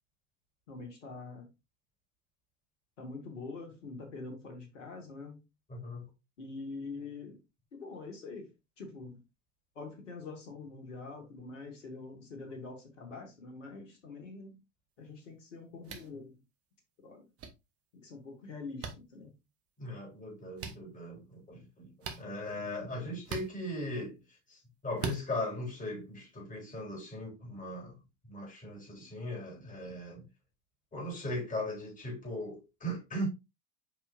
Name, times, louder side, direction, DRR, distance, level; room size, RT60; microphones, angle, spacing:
voice 1, 0.7-1.5 3.0-5.4 6.4-7.4 7.7-8.5 8.8-9.2 9.8-14.6 15.0-16.4 17.0-17.3 17.9-19.3, left 3 dB, 80° left, 2.1 m, -45 dB
voice 2, 5.7-6.0 19.8-24.2 24.5-28.0 28.3-30.2 30.9-33.3, left 1 dB, 20° left, 3.8 m, -39 dB
sound 1, 15.8-16.1 17.4-17.5 18.8-18.9 20.6-20.8 22.0-22.2 23.2-23.5 25.0-25.2, right 5 dB, 40° right, 1.4 m, -38 dB
7.1 x 5.0 x 2.6 m
hypercardioid pair, 80°, 36 cm